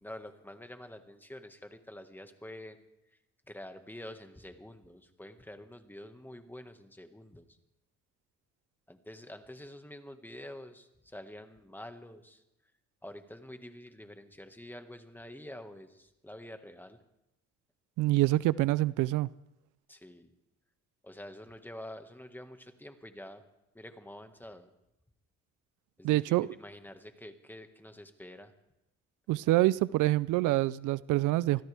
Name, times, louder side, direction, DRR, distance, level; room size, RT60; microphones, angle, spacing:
voice 1, 0.0-3.2 3.5-7.6 8.9-12.4 13.0-17.0 19.9-20.3 21.0-23.4 23.7-24.7 26.0-28.5, left 1 dB, 5° left, 1.7 m, -47 dB
voice 2, 18.0-19.3 26.0-26.5 29.3-31.6, right 17 dB, 90° right, 0.5 m, -26 dB
25.0 x 16.5 x 3.5 m
cardioid pair, 90°, 30 cm